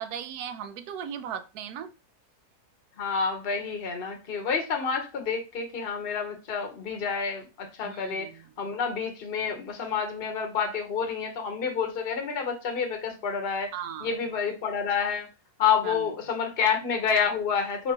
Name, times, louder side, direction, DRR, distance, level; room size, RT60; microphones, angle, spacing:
voice 1, 0.0-1.9 7.8-8.5 13.7-14.1 15.8-16.1, right 8 dB, 80° right, 1.1 m, -37 dB
voice 2, 3.0-8.3 8.6-13.7 14.0-15.3 15.6-17.9, left 6 dB, 45° left, 1.0 m, -28 dB
4.4 x 4.2 x 2.8 m
omnidirectional pair, 1.6 m